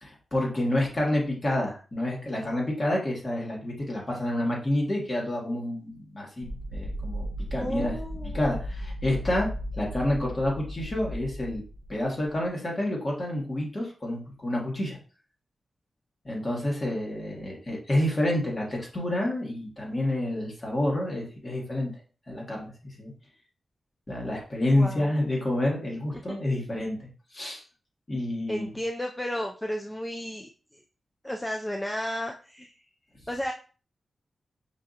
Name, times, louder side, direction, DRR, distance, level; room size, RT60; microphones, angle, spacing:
voice 1, 0.0-8.0 8.3-9.5 9.7-11.6 11.9-15.0 16.2-21.9 22.3-23.1 24.1-27.6 28.1-28.7, left 1 dB, 30° left, -2 dB, 1.6 m, -29 dB
sound 1, 6.4-12.5, equal, 70° left, 0.6 m, -36 dB
voice 2, 7.5-8.5 24.7-25.2 28.5-30.5 31.2-32.7 33.3-33.5, left 1 dB, 10° left, 2 dB, 0.4 m, -33 dB
5.7 x 2.8 x 2.5 m, 0.37 s
wide cardioid pair, 100°, 0 cm